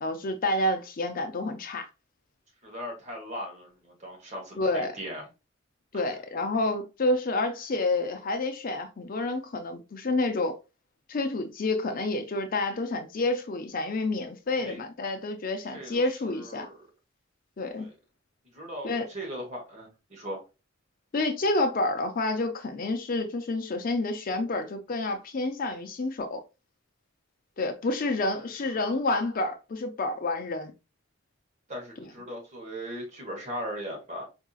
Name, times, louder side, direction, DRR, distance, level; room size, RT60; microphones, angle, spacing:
voice 1, 0.0-1.9 4.6-5.0 5.9-10.6 11.1-16.7 17.6-17.9 18.8-19.1 21.1-26.4 27.6-30.7 32.0-32.1, left 2 dB, 45° left, 0.4 m, -29 dB
voice 2, 2.6-5.2 14.6-14.8 15.7-16.0 16.3-16.8 17.8-17.9 18.5-20.4 28.4-28.8 31.7-34.2, equal, 35° right, 1.2 m, -38 dB
4.6 x 2.7 x 2.3 m
head